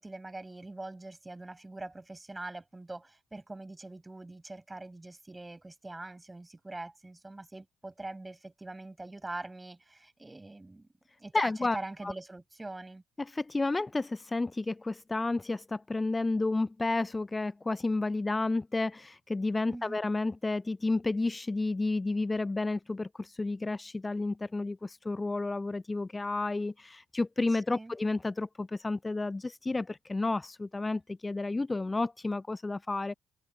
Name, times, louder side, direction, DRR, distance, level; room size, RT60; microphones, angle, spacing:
voice 1, 0.0-10.9 11.2-13.0 19.7-20.0 27.5-27.9, right 2 dB, 20° right, 6.4 m, -43 dB
voice 2, 11.3-12.1 13.2-33.1, left 2 dB, 20° left, 0.6 m, -31 dB
figure-of-eight pair, 40°, 0 cm